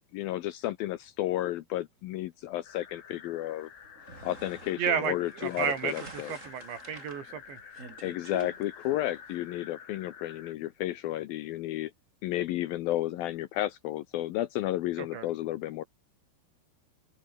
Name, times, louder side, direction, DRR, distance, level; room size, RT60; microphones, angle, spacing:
voice 1, 0.0-3.7 4.2-6.4 8.0-11.9 12.2-15.8, left 14 dB, 75° left, 2.2 m, -32 dB
sound 1, 2.6-10.5, left 7 dB, 55° left, 4.5 m, -50 dB
sound 2, 3.8-9.3, right 3 dB, 20° right, 3.0 m, -48 dB
voice 2, 4.8-7.6 15.0-15.3, right 8 dB, 85° right, 5.9 m, -32 dB
open air
omnidirectional pair, 5.0 m